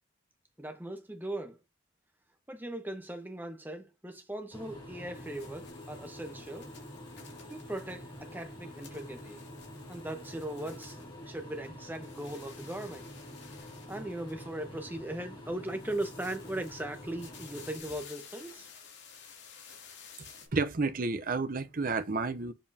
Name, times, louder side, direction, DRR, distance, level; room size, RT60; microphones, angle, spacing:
voice 1, 0.6-1.6 2.5-6.7 7.5-9.4 9.9-13.1 13.9-18.7, right 1 dB, 10° right, 1.0 m, -39 dB
sound 1, 4.5-17.8, equal, 25° left, 2.3 m, -47 dB
sound 2, 5.1-11.7 11.9-14.8 15.6-20.5, left 7 dB, 55° left, 2.5 m, -54 dB
voice 2, 20.5-22.5, right 3 dB, 45° right, 0.7 m, -31 dB
7.0 x 5.4 x 2.8 m
head